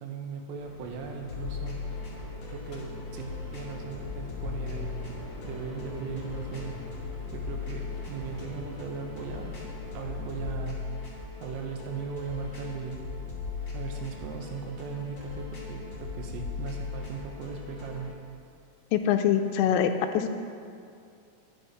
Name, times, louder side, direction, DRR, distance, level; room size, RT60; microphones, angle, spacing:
voice 1, 0.0-1.8 2.5-5.0 5.4-6.8 7.3-9.6 9.9-10.9 11.4-13.0 13.7-18.2, right 6 dB, 80° right, 2 dB, 3.7 m, -38 dB
sound 1, 0.6-10.6, left 1 dB, 65° left, 1.3 m, -44 dB
sound 2, 1.2-18.1, left 5 dB, 30° left, 2.6 m, -38 dB
voice 2, 18.9-20.4, left 9 dB, 85° left, 6 dB, 3.1 m, -24 dB
24.5 x 9.5 x 3.1 m, 2.4 s
omnidirectional pair, 5.9 m